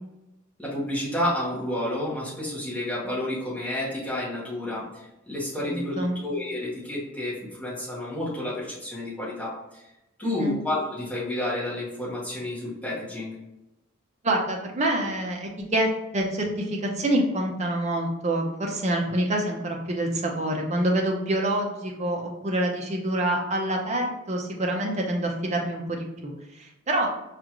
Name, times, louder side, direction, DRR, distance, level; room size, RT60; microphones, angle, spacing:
voice 1, 0.6-9.8 10.2-13.3, left 1 dB, 5° left, -7 dB, 1.2 m, -30 dB
voice 2, 5.6-6.2 10.2-10.6 14.2-26.3 26.9-27.1, right 1 dB, 35° right, 1 dB, 0.6 m, -26 dB
4.9 x 2.5 x 3.0 m, 0.92 s
head